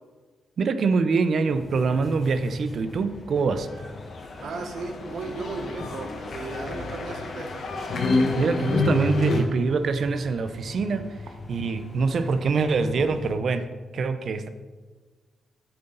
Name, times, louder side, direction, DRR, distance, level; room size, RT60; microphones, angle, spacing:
voice 1, 0.6-3.7 8.4-11.1 11.5-13.7 13.9-14.5, right 4 dB, 45° right, 11 dB, 0.6 m, -24 dB
sound 1, 1.5-13.3, left 2 dB, 25° left, 0.8 m, -42 dB
sound 2, 3.7-9.4, left 2 dB, 50° left, 1.2 m, -28 dB
voice 2, 4.4-7.5, right 3 dB, 65° right, 5 dB, 1.1 m, -35 dB
9.5 x 7.9 x 4.0 m, 1.3 s
wide cardioid pair, 175°, 0 cm